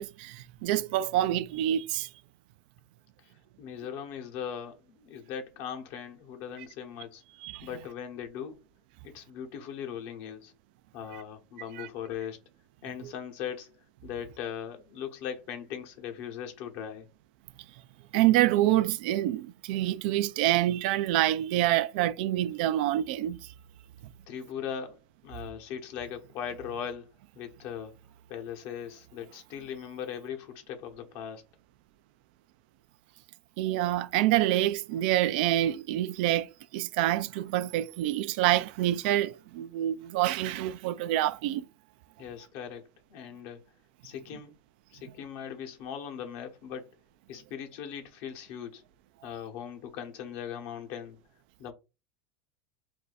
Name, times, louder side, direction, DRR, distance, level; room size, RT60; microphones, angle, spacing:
voice 1, 0.0-2.1 7.4-7.7 11.8-11.9 18.1-23.4 33.6-41.7, right 14 dB, 70° right, 0.3 m, -27 dB
voice 2, 3.6-7.2 7.6-8.6 9.0-10.5 10.9-12.4 12.8-13.7 14.0-17.1 24.3-25.0 25.2-27.1 27.3-28.0 28.3-31.5 42.2-42.8 43.1-43.6 44.0-44.5 44.9-46.9 47.3-48.8 49.2-51.2 51.6-51.7, left 8 dB, 60° left, 0.9 m, -39 dB
2.6 x 2.3 x 4.0 m
hypercardioid pair, 100°, 6 cm